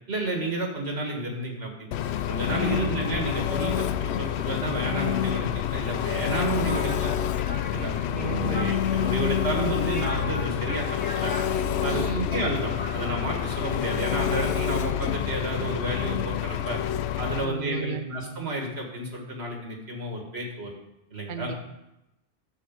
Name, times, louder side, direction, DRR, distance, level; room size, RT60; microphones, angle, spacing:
voice 1, 0.1-1.9 2.3-7.1 7.7-11.3 11.8-16.8 17.2-20.7 21.1-21.5, right 1 dB, 70° right, 1 dB, 1.8 m, -31 dB
Engine, 1.9-17.4, left 10 dB, 75° left, 0.8 m, -28 dB
sound 1, 6.4-15.5, left 1 dB, 10° left, 0.7 m, -41 dB
voice 2, 8.1-8.7 11.9-12.4 17.4-18.1 21.3-21.6, right 5 dB, 55° right, 7 dB, 0.7 m, -35 dB
11.0 x 4.5 x 7.3 m, 0.90 s
omnidirectional pair, 1.1 m